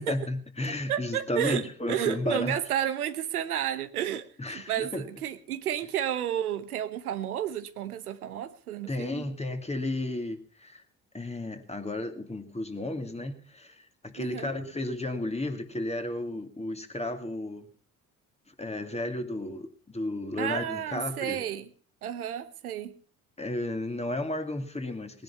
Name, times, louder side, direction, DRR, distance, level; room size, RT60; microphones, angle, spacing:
voice 1, 0.0-2.6 4.4-5.1 8.9-10.8 11.1-17.7 18.6-21.4 23.4-25.2, left 2 dB, 15° left, 2.7 m, -33 dB
voice 2, 0.9-9.2 14.1-14.5 20.4-21.7 22.0-22.9, right 10 dB, 85° right, 1.1 m, -31 dB
19.0 x 10.5 x 5.8 m
hypercardioid pair, 55°, 43 cm